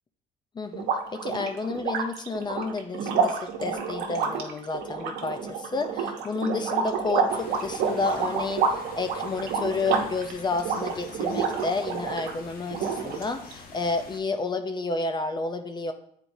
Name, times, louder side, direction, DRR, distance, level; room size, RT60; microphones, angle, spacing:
voice 1, 0.6-15.9, left 3 dB, 25° left, 8 dB, 0.5 m, -31 dB
sound 1, 0.7-12.3 12.7-13.5, right 5 dB, 85° right, 0.9 m, -29 dB
sound 2, 7.3-14.2, left 4 dB, 60° left, 1.1 m, -46 dB
8.6 x 4.4 x 2.7 m, 0.68 s
cardioid pair, 110°, 17 cm